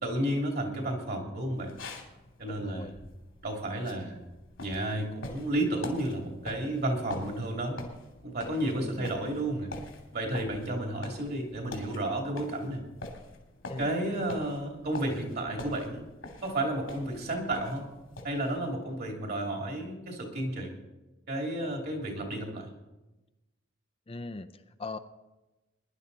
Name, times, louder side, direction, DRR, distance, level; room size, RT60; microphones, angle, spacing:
voice 1, 0.0-1.7 2.4-3.0 3.4-4.3 4.6-7.8 8.2-9.7 10.1-12.8 13.8-16.0 16.4-17.8 18.2-20.7 21.3-22.7, right 1 dB, 50° right, 2 dB, 2.9 m, -32 dB
sound 1, 1.6-18.7, left 2 dB, 85° left, 2.6 m, -45 dB
voice 2, 2.5-2.9 8.8-9.1 13.7-13.9 24.1-25.0, left 3 dB, 30° left, 10 dB, 0.5 m, -40 dB
21.0 x 11.0 x 4.1 m, 1.0 s
head